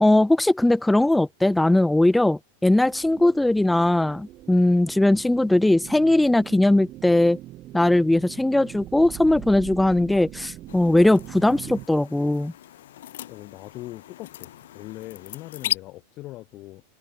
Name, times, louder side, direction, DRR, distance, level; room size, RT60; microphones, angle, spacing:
voice 1, 0.0-7.4 7.7-12.5, left 1 dB, 5° left, 0.3 m, -19 dB
sound 1, 2.6-11.9, right 15 dB, 35° right, 1.2 m, -42 dB
sound 2, 10.7-15.8, left 13 dB, 60° left, 2.0 m, -36 dB
voice 2, 13.3-16.8, left 17 dB, 35° left, 2.7 m, -40 dB
figure-of-eight pair, 90°, 0 cm